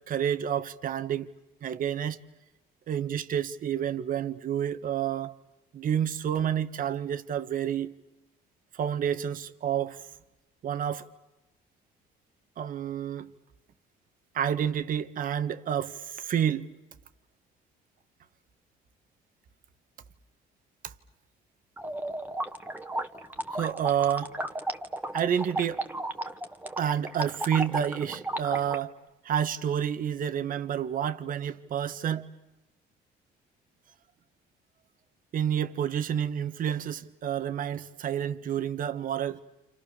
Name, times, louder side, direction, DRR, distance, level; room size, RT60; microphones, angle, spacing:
voice 1, 0.1-1.3 1.6-2.2 2.9-5.3 5.7-7.9 8.7-10.1 10.6-11.1 12.6-13.3 14.3-16.7 20.8-20.9 23.5-24.3 25.1-25.8 26.8-28.9 29.2-32.3 35.3-39.4, right 9 dB, 55° right, 1.5 m, -29 dB
sound 1, 21.8-28.8, right 1 dB, 10° right, 1.7 m, -34 dB
29.0 x 28.0 x 6.9 m
cardioid pair, 110°, 17 cm